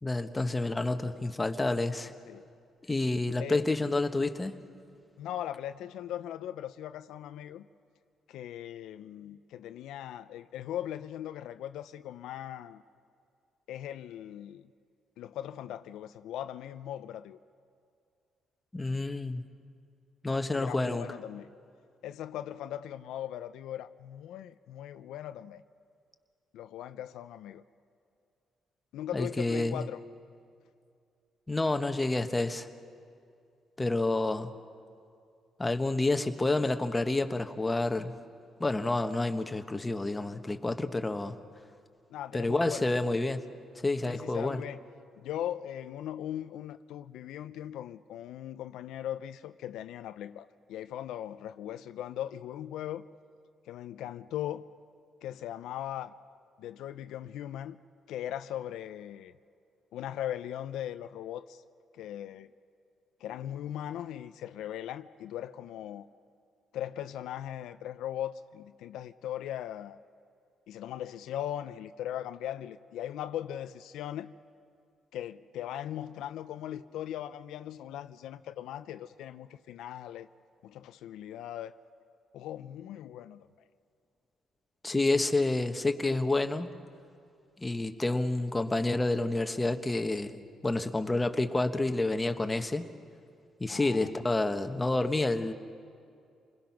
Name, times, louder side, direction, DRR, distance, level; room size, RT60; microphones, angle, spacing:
voice 1, 0.0-2.1 2.9-4.6 18.7-19.4 20.2-21.1 29.1-29.9 31.5-32.7 33.8-34.5 35.6-38.1 38.6-41.4 42.3-43.4 43.8-44.6 84.8-86.7 87.6-90.4 90.6-92.8 93.6-95.5, left 2 dB, 15° left, 1.3 m, -29 dB
voice 2, 5.2-7.7 8.3-12.8 13.7-14.7 15.2-17.4 20.5-21.5 22.0-25.6 26.5-27.6 28.9-30.0 42.1-42.9 44.1-44.8 45.2-53.1 53.7-54.6 55.2-56.1 56.6-57.8 58.1-59.3 59.9-61.6 61.9-62.5 63.2-66.1 66.7-70.0 70.7-74.3 75.1-80.3 80.6-81.7 82.3-83.5 93.7-94.1, left 11 dB, 85° left, 0.5 m, -39 dB
28.0 x 21.0 x 6.0 m
cardioid pair, 90°, 0 cm